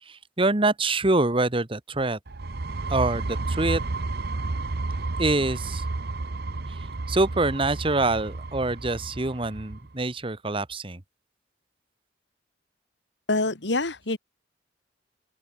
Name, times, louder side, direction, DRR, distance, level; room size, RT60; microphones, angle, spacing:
voice 1, 0.1-2.2 2.9-3.8 5.2-5.8 6.7-6.8 7.1-11.0, right 2 dB, 30° right, 1.3 m, -25 dB
sound 1, 2.3-9.9, right 3 dB, 55° right, 0.8 m, -31 dB
voice 2, 13.3-14.2, left 2 dB, 65° left, 2.1 m, -25 dB
open air
head